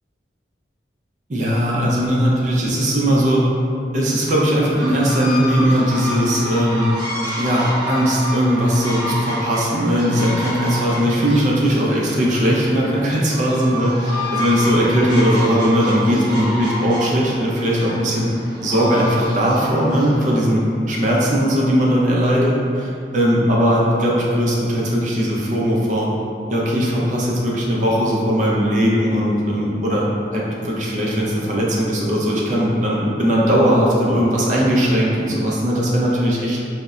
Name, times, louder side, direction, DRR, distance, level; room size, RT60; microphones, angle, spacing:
voice 1, 1.3-3.5 3.9-6.9 7.4-14.0 14.3-18.3 18.6-26.1 26.5-30.1 30.3-36.7, equal, 45° right, -4 dB, 0.5 m, -18 dB
sound 1, 4.7-20.3, equal, 25° right, 0.9 m, -29 dB
4.0 x 2.1 x 2.4 m, 2.5 s
head